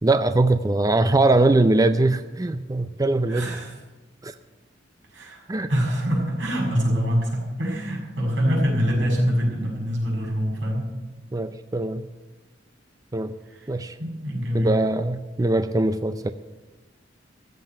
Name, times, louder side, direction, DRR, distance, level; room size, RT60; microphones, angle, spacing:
voice 1, 0.0-3.5 4.2-4.3 5.5-5.7 11.3-12.0 13.1-13.3 13.7-14.0 14.5-16.3, right 2 dB, 20° right, 10 dB, 0.5 m, -21 dB
voice 2, 3.3-3.8 5.1-10.9 13.5-13.7 14.0-14.7, equal, 85° right, -1 dB, 6.2 m, -25 dB
15.0 x 7.7 x 9.4 m, 1.2 s
head